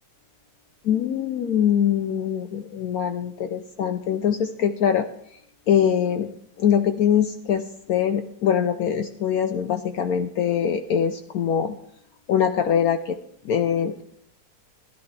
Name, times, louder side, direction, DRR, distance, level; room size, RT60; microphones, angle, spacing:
voice 1, 0.8-5.0 5.7-6.3 6.6-11.8 12.3-13.2 13.4-14.0, left 8 dB, 65° left, 7 dB, 0.9 m, -23 dB
16.0 x 11.0 x 3.3 m, 0.72 s
omnidirectional pair, 2.0 m